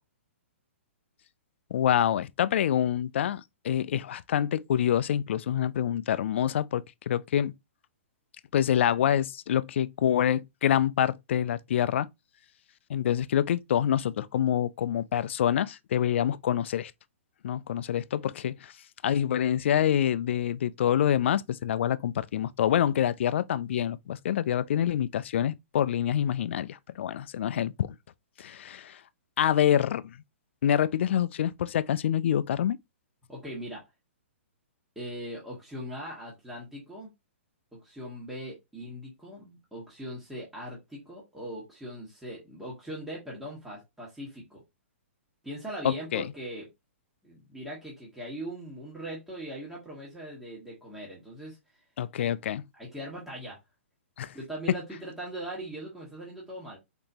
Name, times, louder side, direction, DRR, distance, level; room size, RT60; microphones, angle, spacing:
voice 1, 1.7-7.5 8.5-12.1 12.9-16.9 17.4-18.7 19.0-27.9 28.4-29.0 29.4-30.2 30.6-32.8 45.8-46.3 52.0-52.6 54.2-54.3, left 10 dB, 60° left, 0.4 m, -26 dB
voice 2, 33.3-33.8 34.9-37.1 37.7-44.6 45.4-46.7 47.2-51.6 52.7-53.6 54.3-56.8, right 1 dB, 5° right, 1.5 m, -40 dB
4.1 x 3.5 x 2.8 m
hypercardioid pair, 135°, 7 cm